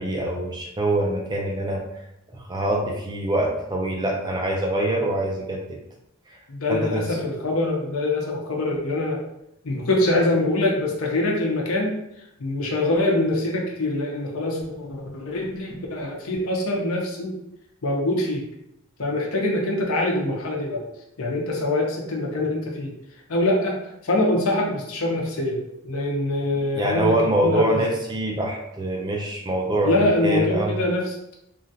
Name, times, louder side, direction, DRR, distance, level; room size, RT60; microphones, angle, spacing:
voice 1, 0.0-1.9 2.3-5.6 6.3-6.4 6.7-7.2 26.7-30.8, right 1 dB, 20° right, 0 dB, 0.4 m, -24 dB
voice 2, 6.5-9.2 9.6-12.0 12.4-17.4 17.8-18.4 19.0-20.9 21.2-22.9 23.3-23.8 24.0-27.7 29.8-31.1, left 1 dB, 80° left, 0 dB, 0.7 m, -24 dB
3.1 x 2.4 x 2.6 m, 0.82 s
head